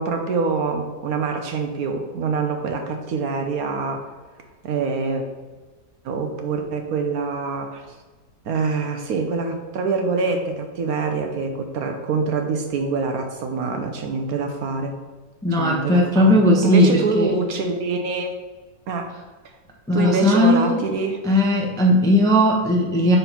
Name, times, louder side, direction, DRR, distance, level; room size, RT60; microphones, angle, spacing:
voice 1, 0.0-4.1 4.6-5.2 6.0-8.0 8.4-14.9 15.5-16.3 16.6-18.3 18.9-19.1 19.9-21.2, right 4 dB, 65° right, 5 dB, 1.1 m, -25 dB
voice 2, 15.4-17.3 19.9-20.8 21.2-23.2, left 1 dB, 5° left, -1 dB, 0.6 m, -17 dB
5.2 x 4.3 x 5.8 m, 1.3 s
omnidirectional pair, 1.8 m